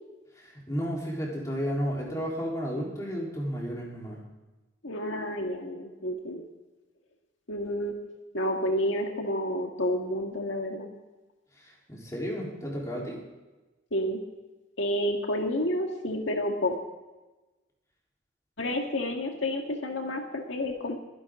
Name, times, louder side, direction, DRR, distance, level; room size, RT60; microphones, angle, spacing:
voice 1, 0.4-4.2 11.6-13.2, equal, 15° left, -3 dB, 3.8 m, -33 dB
voice 2, 4.8-6.4 7.5-8.0 8.3-10.9 13.9-14.2 14.8-16.7 18.6-21.0, left 1 dB, 85° left, 2 dB, 1.9 m, -30 dB
23.0 x 11.5 x 3.8 m, 1.1 s
head